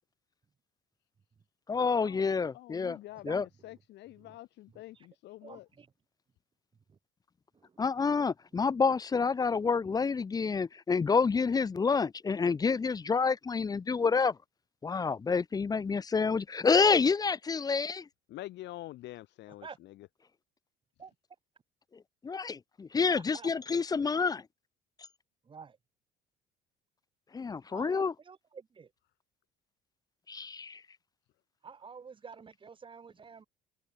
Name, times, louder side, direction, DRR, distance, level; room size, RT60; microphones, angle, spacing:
voice 1, 1.7-3.0 3.2-3.4 7.8-14.4 14.8-18.0 22.2-24.4 27.3-28.1 30.3-30.8, left 5 dB, 20° left, 0.9 m, -28 dB
voice 2, 2.5-5.6 18.3-19.6, left 16 dB, 65° left, 4.2 m, -46 dB
voice 3, 3.1-3.8 4.2-4.4 4.7-5.1 5.4-5.9 6.9-7.0 7.5-7.8 19.5-19.8 21.0-21.1 23.1-23.5 25.4-25.8 27.7-28.9 31.6-33.4, right 5 dB, 25° right, 6.8 m, -50 dB
cardioid pair, 135°, 19 cm